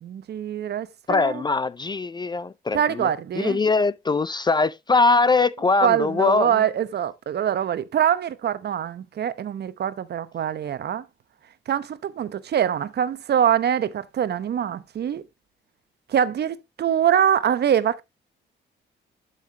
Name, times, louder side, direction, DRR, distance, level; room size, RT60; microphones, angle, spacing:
voice 1, 0.0-1.4 2.7-3.6 5.8-11.0 11.7-15.2 16.1-18.0, right 9 dB, 55° right, 0.9 m, -24 dB
voice 2, 1.1-3.1 3.3-6.5, left 3 dB, 20° left, 0.4 m, -21 dB
12.0 x 5.7 x 2.8 m
cardioid pair, 90°, 20 cm